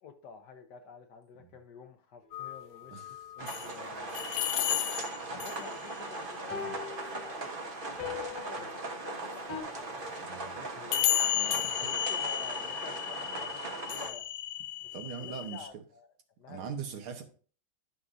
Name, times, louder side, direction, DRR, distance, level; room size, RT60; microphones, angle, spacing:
voice 1, 0.0-4.4 5.2-6.9 7.2-7.5 7.9-11.4 11.8-14.3 14.8-16.7, left 5 dB, 65° left, 1.2 m, -50 dB
sound 1, 2.3-3.7 4.1-5.8 9.5-9.6 10.9-15.7, left 13 dB, 85° left, 0.8 m, -33 dB
sound 2, 2.3-2.4 6.5-9.6, left 7 dB, 35° left, 1.5 m, -42 dB
voice 2, 2.9-3.5 5.3-5.4 6.5-6.8 10.3-10.6 11.3-11.9 13.3-13.4 14.9-15.8 16.5-17.2, right 7 dB, 85° right, 2.0 m, -42 dB
sound 3, 3.4-14.1, right 2 dB, 40° right, 0.7 m, -39 dB
11.0 x 5.9 x 2.6 m
omnidirectional pair, 2.3 m